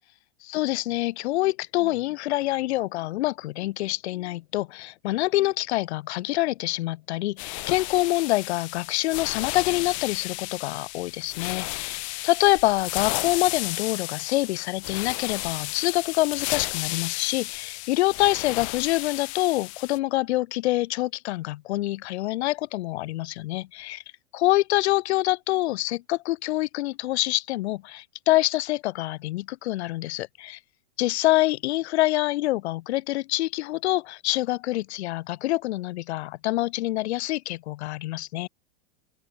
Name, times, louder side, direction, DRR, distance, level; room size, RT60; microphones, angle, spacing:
voice 1, 0.4-12.0 12.2-24.0 24.3-30.6 31.0-38.5, left 17 dB, 85° left, 0.5 m, -26 dB
sound 1, 7.4-20.0, left 26 dB, 35° left, 0.4 m, -33 dB
open air
supercardioid pair, 155°, 32 cm